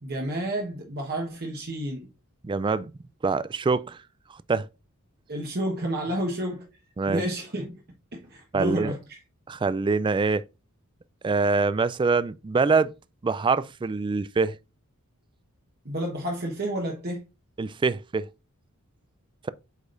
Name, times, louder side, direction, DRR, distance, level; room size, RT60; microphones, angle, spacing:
voice 1, 0.0-2.1 5.3-6.7 7.1-7.8 8.1-9.2 15.8-17.2, right 1 dB, 45° right, 1.3 m, -30 dB
voice 2, 2.4-2.9 3.2-4.0 4.5-4.7 7.0-7.2 8.5-8.9 9.5-10.4 11.2-12.9 13.2-14.6 17.6-18.3, right 4 dB, 20° right, 0.3 m, -24 dB
8.1 x 5.1 x 2.6 m
head